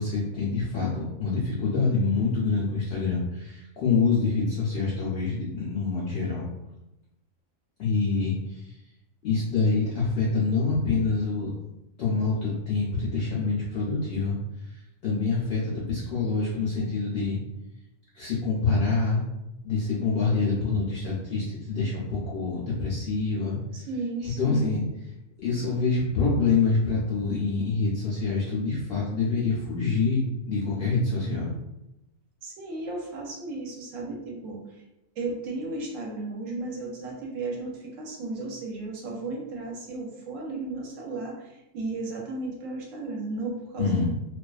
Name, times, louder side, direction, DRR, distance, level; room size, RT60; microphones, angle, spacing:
voice 1, 0.0-6.5 7.8-8.7 9.2-11.5 12.0-14.4 15.0-17.4 18.1-19.2 19.6-23.6 24.2-24.8 25.4-31.5 43.8-44.1, left 4 dB, 70° left, -6 dB, 0.6 m, -26 dB
voice 2, 23.7-24.6 32.4-34.8 35.2-44.1, right 2 dB, 70° right, -1 dB, 0.9 m, -34 dB
2.3 x 2.3 x 2.3 m, 0.92 s
omnidirectional pair, 1.5 m